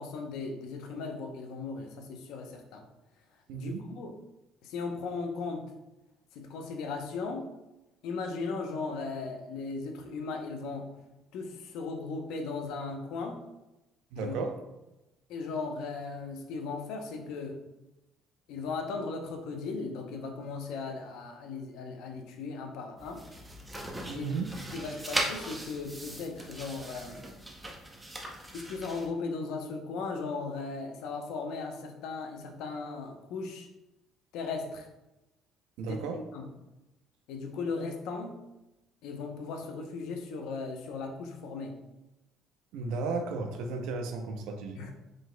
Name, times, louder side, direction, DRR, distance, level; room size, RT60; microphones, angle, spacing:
voice 1, 0.0-2.8 3.5-4.2 4.6-5.7 6.3-7.5 8.0-10.9 11.3-13.4 14.2-14.4 15.3-17.6 18.5-23.2 24.1-24.3 24.7-27.3 28.5-33.7 34.3-34.9 35.8-36.5 37.3-38.4 39.0-41.8 44.7-44.9, left 4 dB, 80° left, 3 dB, 0.7 m, -37 dB
voice 2, 3.5-3.8 14.1-14.5 24.1-24.5 35.8-36.2 42.7-44.8, right 4 dB, 85° right, 6 dB, 0.5 m, -34 dB
sound 1, 23.0-29.1, right 1 dB, 10° right, 0.7 m, -38 dB
5.1 x 3.8 x 2.2 m, 0.97 s
cardioid pair, 120°, 0 cm